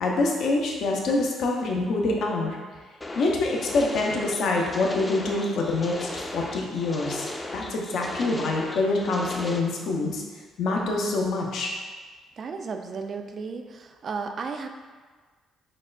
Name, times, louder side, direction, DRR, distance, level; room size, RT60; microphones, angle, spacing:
voice 1, 0.0-2.6 3.2-7.3 7.5-10.2 10.6-11.7, left 2 dB, 70° left, 0 dB, 0.6 m, -26 dB
sound 1, 3.0-9.6, left 1 dB, 20° left, 0.5 m, -36 dB
voice 2, 12.4-14.7, right 5 dB, 50° right, 5 dB, 0.3 m, -34 dB
5.9 x 2.1 x 2.4 m, 1.4 s
supercardioid pair, 60°, 0 cm